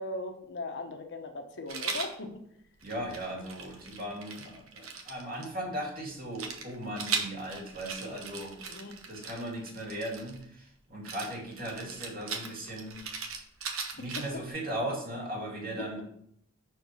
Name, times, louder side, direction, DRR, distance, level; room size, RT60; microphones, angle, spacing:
voice 1, 0.0-2.3 8.6-9.0 15.8-15.9, left 2 dB, 60° left, 4 dB, 0.9 m, -38 dB
Rattle, 1.7-2.1 2.8-5.5 6.4-10.4 11.0-14.5, right 5 dB, 85° right, 1.1 m, -38 dB
voice 2, 2.8-8.5 9.1-13.0 13.9-16.0, right 1 dB, 45° right, -3 dB, 2.4 m, -37 dB
5.9 x 4.6 x 5.5 m, 0.71 s
head